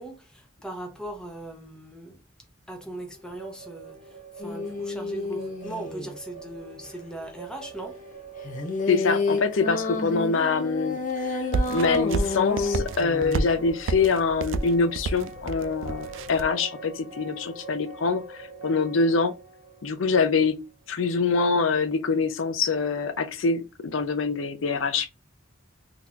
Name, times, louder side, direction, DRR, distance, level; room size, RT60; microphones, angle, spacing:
voice 1, 0.0-2.2 2.7-4.0 4.4-8.0, right 1 dB, 5° left, 0.8 m, -39 dB
sound 1, 3.1-20.9, right 4 dB, 35° right, 0.9 m, -44 dB
sound 2, 4.4-6.2 8.4-13.5, left 3 dB, 40° left, 0.6 m, -30 dB
voice 2, 8.9-11.0 11.2-11.4 11.7-19.3 19.8-20.6 20.9-25.1, left 4 dB, 80° left, 0.6 m, -24 dB
sound 3, 11.5-16.5, right 3 dB, 75° right, 0.4 m, -30 dB
3.7 x 2.9 x 2.4 m
head